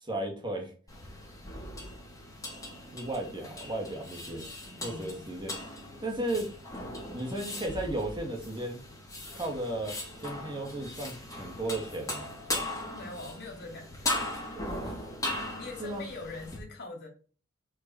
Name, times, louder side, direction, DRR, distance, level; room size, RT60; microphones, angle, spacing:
voice 1, 0.0-0.7 2.9-4.5 4.8-5.5 6.0-6.5 7.1-8.8 9.3-10.0 10.2-12.3 14.8-15.1 15.8-16.0, right 1 dB, 20° right, 2 dB, 2.3 m, -34 dB
sound 1, 0.9-16.6, left 1 dB, 15° left, 3.6 m, -39 dB
voice 2, 4.8-5.3 12.9-14.3 15.5-17.1, left 3 dB, 50° left, 2 dB, 3.4 m, -43 dB
6.5 x 6.0 x 7.0 m, 0.39 s
head